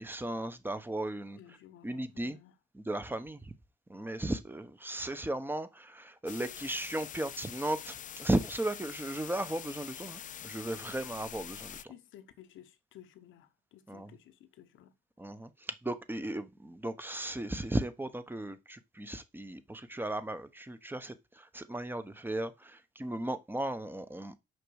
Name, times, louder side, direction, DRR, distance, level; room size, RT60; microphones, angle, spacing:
voice 1, 0.0-1.4 1.8-2.4 2.7-3.5 3.9-11.9 13.9-14.1 15.2-24.4, right 1 dB, 10° right, 1.1 m, -36 dB
voice 2, 1.3-2.5 11.9-14.9, left 11 dB, 80° left, 1.1 m, -55 dB
sound 1, 6.3-11.8, left 9 dB, 40° left, 0.4 m, -45 dB
6.4 x 5.2 x 6.5 m
cardioid pair, 90°, 20 cm